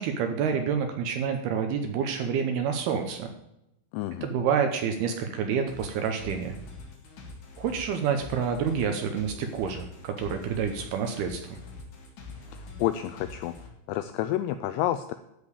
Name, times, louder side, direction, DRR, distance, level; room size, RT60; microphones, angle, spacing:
voice 1, 0.0-3.3 4.2-6.6 7.6-11.6, right 7 dB, 75° right, 6 dB, 2.4 m, -28 dB
voice 2, 3.9-4.3 12.5-13.5 13.9-15.1, left 13 dB, 85° left, 10 dB, 2.5 m, -29 dB
sound 1, 5.7-13.7, left 3 dB, 50° left, 3.1 m, -44 dB
13.0 x 5.2 x 8.2 m, 0.87 s
omnidirectional pair, 5.3 m